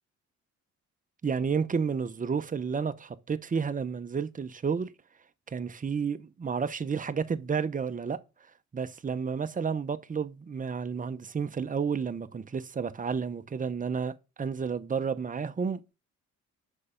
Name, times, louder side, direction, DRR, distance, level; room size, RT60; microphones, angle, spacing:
voice 1, 1.2-4.9 5.5-8.2 8.7-15.9, right 6 dB, 25° right, 0.8 m, -31 dB
6.6 x 5.5 x 5.1 m
cardioid pair, 90°, 30 cm